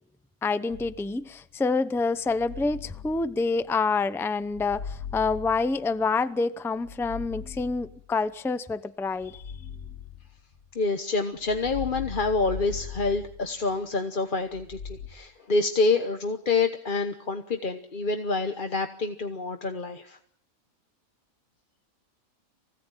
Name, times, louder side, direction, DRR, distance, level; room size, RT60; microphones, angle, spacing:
voice 1, 0.4-9.4, left 4 dB, 5° left, 0.4 m, -27 dB
sound 1, 0.7-1.4 2.2-3.8 4.4-6.2 6.7-8.3 9.1-10.8 11.4-13.9 14.5-15.1, left 7 dB, 70° left, 3.4 m, -40 dB
voice 2, 10.7-20.2, left 3 dB, 40° left, 1.2 m, -27 dB
24.5 x 17.0 x 9.1 m
omnidirectional pair, 1.5 m